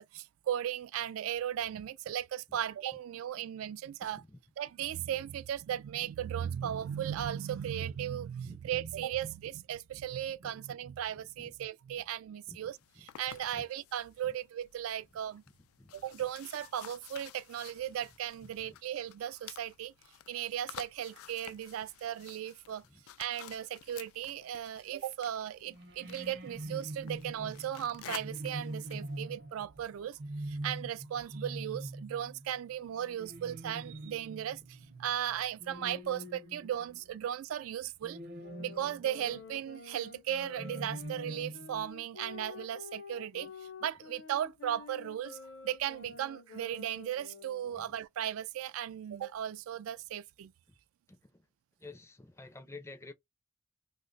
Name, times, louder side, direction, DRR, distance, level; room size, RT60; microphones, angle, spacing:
voice 1, 0.1-4.2 4.6-15.4 15.9-19.9 20.3-22.8 23.2-30.2 30.4-38.2 38.6-45.4 45.6-50.5, right 10 dB, 85° right, 0.3 m, -37 dB
voice 2, 11.2-11.5 12.5-12.6 13.5-13.6 14.2-14.3 15.8-15.9 18.4-18.7 22.9-23.0 47.8-47.9 51.1-51.4 51.8-53.1, left 2 dB, 15° left, 0.4 m, -51 dB
sound 1, 12.7-29.2, left 12 dB, 90° left, 0.3 m, -52 dB
sound 2, 25.7-37.3 38.0-39.4 40.3-41.9, right 1 dB, 50° right, 0.6 m, -44 dB
Sax Alto - G minor, 38.4-48.1, left 5 dB, 60° left, 0.6 m, -49 dB
2.8 x 2.1 x 3.9 m
head